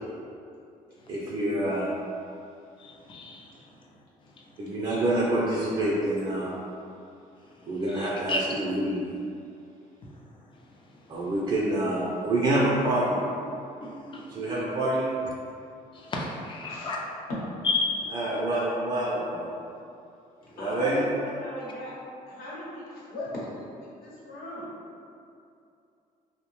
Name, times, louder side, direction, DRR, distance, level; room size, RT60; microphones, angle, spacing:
voice 1, 1.1-1.9 4.6-6.5 7.7-9.0 11.1-13.2 14.2-15.0 18.1-19.5 20.6-21.0, right 1 dB, 35° right, -6 dB, 0.4 m, -27 dB
voice 2, 2.8-3.5 7.9-8.4 13.8-14.2 16.1-17.0 17.6-18.3, left 3 dB, 35° left, -1 dB, 0.4 m, -31 dB
voice 3, 16.6-16.9 20.6-22.0 22.3-23.5 23.8-24.7, left 1 dB, 75° left, -7 dB, 0.9 m, -38 dB
2.6 x 2.1 x 2.9 m, 2.6 s
cardioid pair, 110°, 15 cm